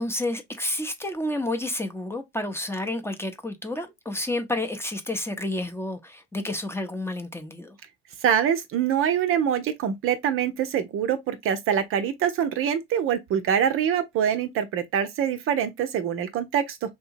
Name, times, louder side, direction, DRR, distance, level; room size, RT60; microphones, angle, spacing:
voice 1, 0.0-7.8, left 1 dB, 10° left, 0.6 m, -30 dB
voice 2, 8.2-17.0, right 8 dB, 45° right, 0.6 m, -25 dB
3.7 x 2.7 x 2.5 m
hypercardioid pair, 65°, 32 cm